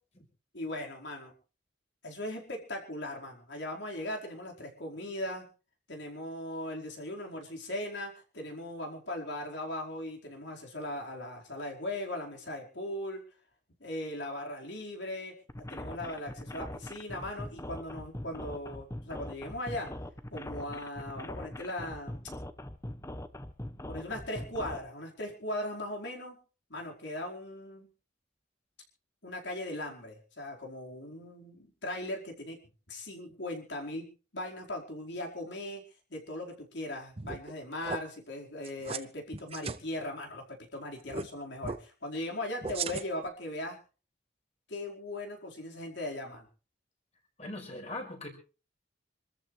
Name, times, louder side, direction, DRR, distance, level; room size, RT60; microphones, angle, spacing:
voice 1, 0.5-1.3 2.0-5.5 5.9-13.2 13.8-15.3 15.7-19.9 20.3-22.2 23.9-26.4 26.7-27.9 29.2-32.6 32.9-35.8 36.1-40.4 40.7-43.8 44.7-46.5, left 1 dB, 70° left, 0 dB, 4.8 m, -39 dB
sound 1, 15.5-24.8, left 1 dB, 15° left, 0.9 m, -41 dB
sound 2, 37.2-37.5 37.8-38.0 38.6-39.0 39.3-39.8 41.1-41.3 41.6-41.8 42.6-43.3, right 4 dB, 30° right, 0.7 m, -36 dB
voice 2, 47.4-48.3, left 2 dB, 35° left, 2 dB, 5.4 m, -40 dB
26.5 x 14.0 x 3.3 m, 0.36 s
head